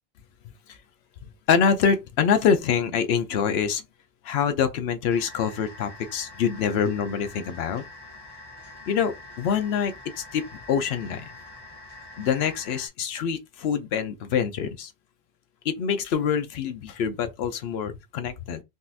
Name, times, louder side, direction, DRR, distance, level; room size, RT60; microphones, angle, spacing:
voice 1, 1.5-3.8 4.2-7.8 8.9-11.3 12.2-14.9 15.6-18.6, left 7 dB, 80° left, 0.9 m, -25 dB
sound 1, 5.1-12.9, left 2 dB, 30° left, 0.6 m, -45 dB
3.9 x 2.4 x 2.6 m
omnidirectional pair, 1.0 m